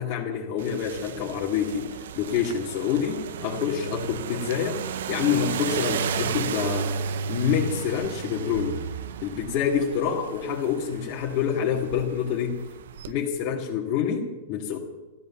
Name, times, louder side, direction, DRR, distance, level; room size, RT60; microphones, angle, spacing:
voice 1, 0.0-4.8 5.1-8.8 9.2-12.6 13.1-14.8, left 8 dB, 50° left, -4 dB, 2.2 m, -27 dB
sound 1, 0.6-13.1, right 7 dB, 80° right, 0.7 m, -33 dB
13.5 x 13.0 x 7.2 m, 1.2 s
hypercardioid pair, 130°, 0 cm